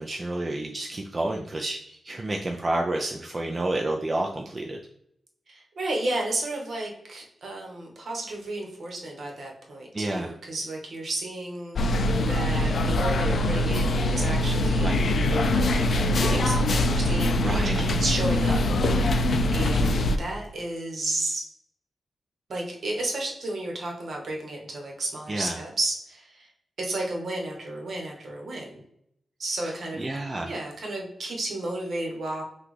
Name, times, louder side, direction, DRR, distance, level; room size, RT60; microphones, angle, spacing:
voice 1, 0.0-4.8 9.9-10.3 14.8-15.0 17.4-17.9 25.3-25.6 29.6-29.7 30.0-30.5, right 2 dB, 25° right, 1 dB, 0.3 m, -30 dB
voice 2, 5.5-11.8 12.2-15.0 15.5-19.2 19.5-21.4 22.5-26.5 26.8-28.8 29.4-30.1 30.4-32.4, right 2 dB, 55° right, 0 dB, 1.1 m, -32 dB
sound 1, 11.8-20.2, left 1 dB, 55° left, 0.3 m, -23 dB
5.8 x 2.3 x 3.2 m, 0.75 s
wide cardioid pair, 135°, 0 cm